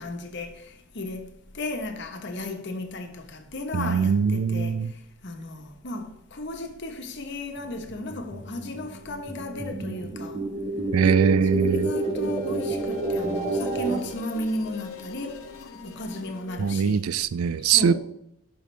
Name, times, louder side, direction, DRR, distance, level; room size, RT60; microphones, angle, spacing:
voice 1, 0.0-10.6 11.5-17.0 17.6-18.0, left 1 dB, 55° left, 1.1 m, -35 dB
voice 2, 3.7-4.9 10.9-11.9 16.6-18.0, right 6 dB, 85° right, 0.4 m, -22 dB
sound 1, 7.6-14.0, right 2 dB, 10° right, 2.2 m, -29 dB
sound 2, 10.8-16.8, left 4 dB, 85° left, 1.1 m, -41 dB
11.5 x 5.3 x 3.3 m
head